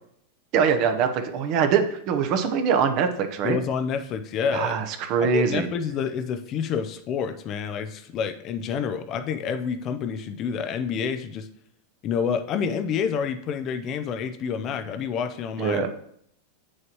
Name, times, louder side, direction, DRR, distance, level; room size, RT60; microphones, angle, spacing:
voice 1, 0.5-3.6 4.5-5.7 15.6-15.9, right 6 dB, 45° right, 7 dB, 0.8 m, -23 dB
voice 2, 3.4-4.8 5.2-11.5 12.0-15.8, left 6 dB, 40° left, 9 dB, 0.5 m, -28 dB
7.6 x 6.4 x 3.0 m, 0.70 s
supercardioid pair, 130°, 0 cm